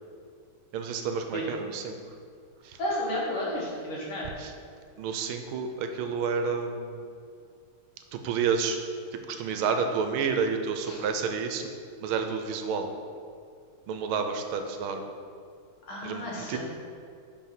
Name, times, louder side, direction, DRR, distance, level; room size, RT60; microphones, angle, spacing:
voice 1, 0.7-2.0 2.6-2.8 4.4-4.5 5.0-7.0 8.1-8.8 9.1-11.7 12.0-12.9 13.9-15.1 16.0-16.6, right 5 dB, 80° right, 6 dB, 1.4 m, -30 dB
voice 2, 2.8-4.3 10.9-11.0 15.9-16.6, left 1 dB, 75° left, -5 dB, 2.3 m, -32 dB
5.6 x 4.6 x 5.9 m, 2.3 s
omnidirectional pair, 2.4 m